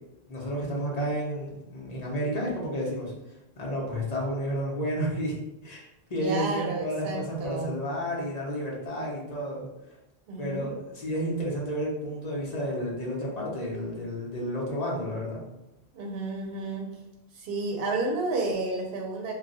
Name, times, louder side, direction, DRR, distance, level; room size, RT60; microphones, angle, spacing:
voice 1, 0.3-3.1 3.6-5.3 5.6-5.8 6.1-9.7 10.4-15.4, equal, 40° left, -3 dB, 0.9 m, -31 dB
voice 2, 6.2-7.7 10.3-10.7 15.9-16.9 17.3-19.3, right 3 dB, 70° right, 0 dB, 0.9 m, -31 dB
2.3 x 2.2 x 3.9 m, 0.90 s
omnidirectional pair, 1.1 m